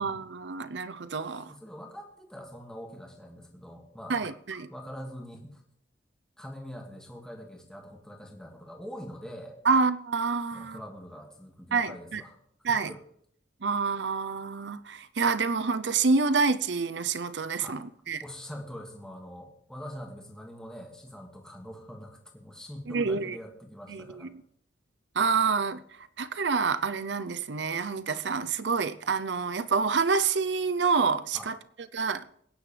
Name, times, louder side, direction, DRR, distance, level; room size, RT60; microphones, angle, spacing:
voice 1, 0.0-1.5 4.1-4.7 9.6-10.8 11.7-12.2 12.6-12.9 13.6-18.2 22.9-23.4 23.9-24.2 25.2-25.8 26.2-31.6 31.9-32.2, right 4 dB, 70° right, 0.7 m, -27 dB
voice 2, 1.4-5.6 6.4-9.6 10.5-12.4 12.7-13.0 17.6-17.8 18.2-24.3 31.3-31.5, equal, 5° left, 2.2 m, -44 dB
22.5 x 10.0 x 3.4 m
head